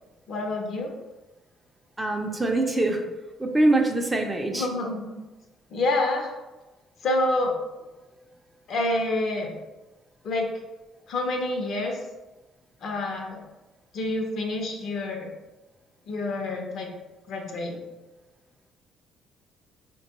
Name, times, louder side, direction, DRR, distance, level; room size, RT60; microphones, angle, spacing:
voice 1, 0.3-0.9 4.5-5.1 5.7-6.3 7.0-7.5 8.7-9.5 10.2-10.5 11.1-12.0 12.8-13.4 13.9-15.3 16.1-16.9 17.3-17.8, left 2 dB, 65° left, 2 dB, 0.6 m, -27 dB
voice 2, 2.0-3.1 3.4-4.7, right 2 dB, 15° right, 2 dB, 0.5 m, -23 dB
3.7 x 2.2 x 2.9 m, 1.1 s
supercardioid pair, 70°, 0 cm